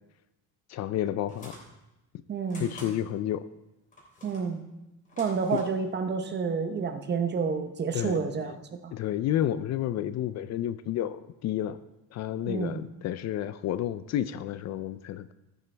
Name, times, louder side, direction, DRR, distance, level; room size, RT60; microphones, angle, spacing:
voice 1, 0.7-1.6 2.6-3.4 5.5-5.6 7.9-8.6 8.9-11.8 12.1-15.3, left 11 dB, 50° left, 14 dB, 0.4 m, -31 dB
sound 1, 1.3-1.7 2.5-2.9 3.9-4.5 5.0-5.8, left 1 dB, 20° left, 3.3 m, -48 dB
voice 2, 2.3-2.7 4.2-4.6 5.2-8.5 8.8-8.9 12.5-12.9, right 5 dB, 30° right, 7 dB, 0.8 m, -29 dB
14.0 x 9.2 x 3.3 m, 0.95 s
cardioid pair, 160°, 36 cm